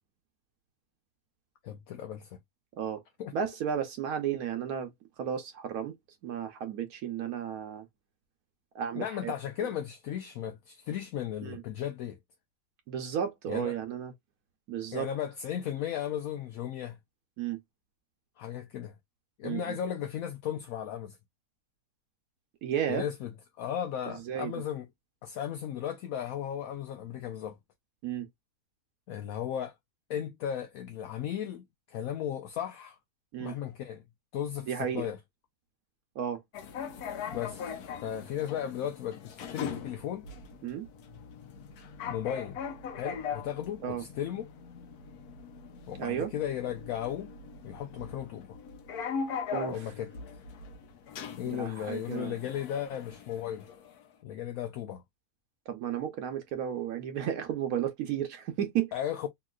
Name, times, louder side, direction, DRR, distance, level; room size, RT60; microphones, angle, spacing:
voice 1, 1.6-2.4 3.2-3.3 8.9-12.2 13.5-13.7 14.9-17.0 18.4-19.0 19.4-21.2 22.9-23.3 23.6-24.9 25.2-27.6 29.1-29.7 30.1-33.0 33.4-34.0 34.3-35.2 37.3-40.3 42.1-42.6 43.0-44.5 45.9-47.3 47.6-48.6 49.7-50.1 51.4-53.7 54.2-55.0 58.9-59.3, left 10 dB, 70° left, 1.0 m, -35 dB
voice 2, 3.3-4.9 5.2-6.0 6.2-7.9 8.7-9.3 9.6-9.7 11.4-11.6 12.9-14.1 14.7-15.1 17.4-17.6 19.4-19.8 22.6-23.1 24.1-24.5 28.0-28.3 33.3-33.5 34.7-35.1 36.2-36.4 40.6-40.9 43.8-44.0 46.0-46.3 49.5-49.9 51.4-52.4 55.7-58.9, right 9 dB, 80° right, 1.1 m, -33 dB
sound 1, 36.5-54.1, left 6 dB, 90° left, 1.2 m, -41 dB
3.0 x 2.9 x 2.3 m
omnidirectional pair, 1.6 m